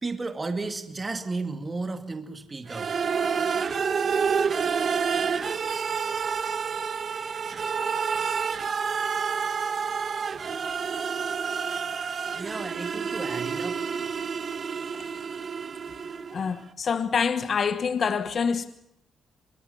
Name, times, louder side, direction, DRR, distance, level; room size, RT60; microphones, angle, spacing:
voice 1, 0.0-3.0 12.3-13.8, right 3 dB, 35° right, 2.3 m, -33 dB
sound 1, 2.7-16.5, right 6 dB, 55° right, 1.4 m, -29 dB
voice 2, 16.3-18.7, left 6 dB, 60° left, 1.2 m, -26 dB
24.5 x 21.5 x 7.1 m
supercardioid pair, 50°, 0 cm